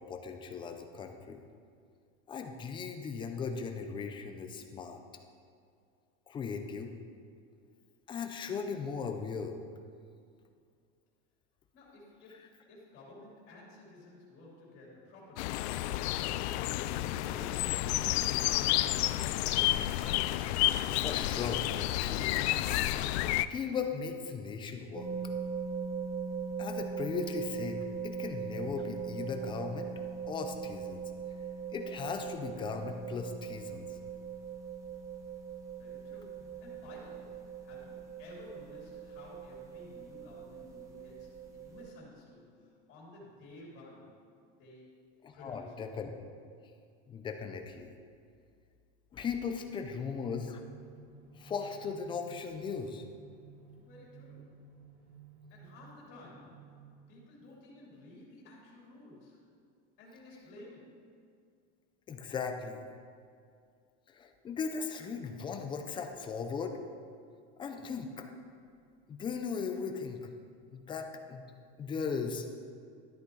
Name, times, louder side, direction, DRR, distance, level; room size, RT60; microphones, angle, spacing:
voice 1, 0.0-1.4 2.3-5.0 6.3-6.9 8.1-9.6 21.0-22.8 23.5-25.1 26.6-29.9 30.3-31.0 31.7-34.0 45.2-46.1 47.1-47.9 49.1-50.6 51.4-53.0 62.1-62.8 64.1-66.8 67.6-68.3 69.1-70.3 70.7-71.4 71.8-72.5, left 5 dB, 15° left, 5 dB, 0.5 m, -38 dB
voice 2, 11.7-15.9 16.4-19.2 35.8-44.2 44.6-45.0 45.3-45.8 53.8-54.6 55.5-56.8 57.1-59.4 60.0-61.0, left 1 dB, 35° left, -4 dB, 3.0 m, -53 dB
sound 1, 15.4-23.5, left 15 dB, 85° left, 0.5 m, -30 dB
sound 2, 24.9-41.8, right 6 dB, 10° right, 1.0 m, -40 dB
sound 3, 49.6-57.5, right 6 dB, 30° right, 1.2 m, -55 dB
13.0 x 8.4 x 3.9 m, 2.3 s
supercardioid pair, 170°, 32 cm